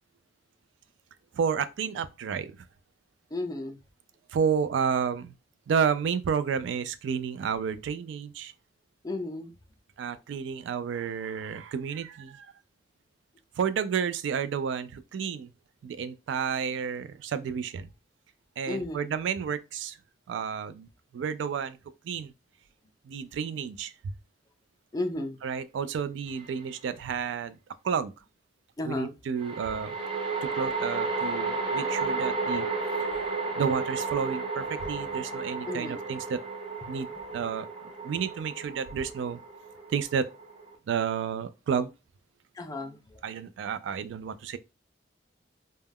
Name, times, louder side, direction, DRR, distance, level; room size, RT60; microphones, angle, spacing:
voice 1, 1.3-2.6 4.3-5.3 5.7-8.5 10.0-12.5 13.6-15.5 15.8-17.9 18.6-20.0 20.3-21.8 22.0-22.3 23.1-24.1 25.4-27.6 27.8-28.1 28.8-29.9 30.4-32.7 33.1-33.2 33.6-36.4 36.9-37.1 37.3-37.7 38.0-39.4 39.9-40.3 40.9-41.9 43.2-44.6, right 6 dB, 85° right, 0.3 m, -31 dB
voice 2, 3.3-3.8 9.0-9.5 18.7-19.1 24.9-25.4 28.8-29.2 35.7-36.0 36.8-37.2 38.9-39.0 42.5-43.2, left 2 dB, 20° left, 0.4 m, -34 dB
sound 1, 26.4-26.5 29.4-40.7, right 3 dB, 30° right, 0.6 m, -33 dB
2.2 x 2.1 x 3.4 m
head